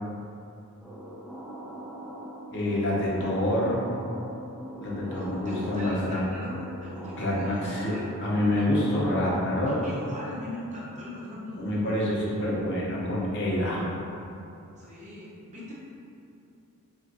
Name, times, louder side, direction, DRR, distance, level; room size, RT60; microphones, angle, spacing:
sound 1, 0.8-10.3, right 1 dB, ahead, 0.9 m, -41 dB
voice 1, 2.5-3.8 4.8-6.2 7.2-7.9 8.2-9.8 11.6-13.9, left 1 dB, 55° left, -5 dB, 0.8 m, -27 dB
voice 2, 5.1-6.6 6.8-8.7 9.7-12.0 14.8-15.7, left 1 dB, 35° right, -7 dB, 0.8 m, -40 dB
5.6 x 2.4 x 2.6 m, 2.7 s
head